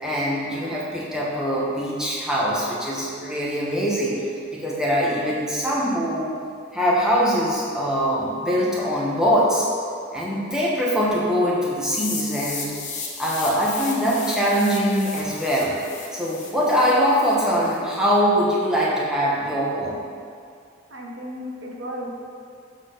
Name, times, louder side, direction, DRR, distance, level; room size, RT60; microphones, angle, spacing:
voice 1, 0.0-4.2 4.5-6.3 6.7-9.7 10.1-12.7 13.2-15.7 16.1-20.0, equal, 5° right, -6 dB, 1.2 m, -22 dB
sound 1, 11.8-17.8, left 5 dB, 35° left, 1.1 m, -35 dB
voice 2, 20.9-22.1, equal, 60° right, -1 dB, 1.1 m, -34 dB
7.3 x 6.1 x 4.0 m, 2.3 s
head